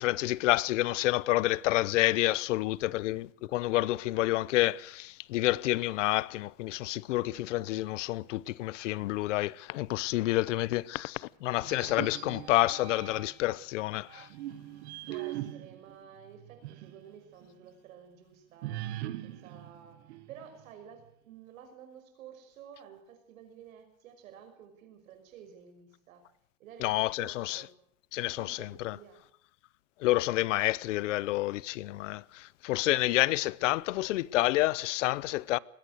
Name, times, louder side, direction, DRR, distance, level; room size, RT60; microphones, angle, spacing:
voice 1, 0.0-14.3 26.8-27.6 28.1-29.0 30.0-35.6, left 17 dB, 65° left, 0.8 m, -29 dB
sound 1, 11.6-13.5 14.1-17.0 17.4-17.5 18.6-20.7, right 14 dB, 55° right, 1.7 m, -41 dB
voice 2, 15.1-18.9 19.2-26.3 26.6-27.8 28.4-29.2, right 8 dB, 80° right, 5.9 m, -52 dB
21.0 x 17.5 x 8.1 m
supercardioid pair, 175°, 40 cm